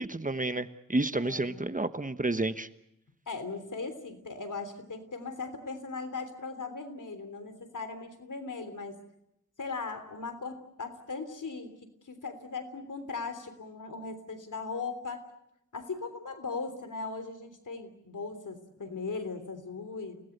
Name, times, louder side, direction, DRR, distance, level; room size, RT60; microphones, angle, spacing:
voice 1, 0.0-2.7, right 2 dB, 25° right, 11 dB, 1.1 m, -30 dB
voice 2, 1.2-1.8 3.3-9.0 9.6-15.2 15.7-20.2, left 4 dB, 80° left, 9 dB, 3.4 m, -38 dB
29.0 x 18.5 x 8.0 m, 0.81 s
wide cardioid pair, 75°, 31 cm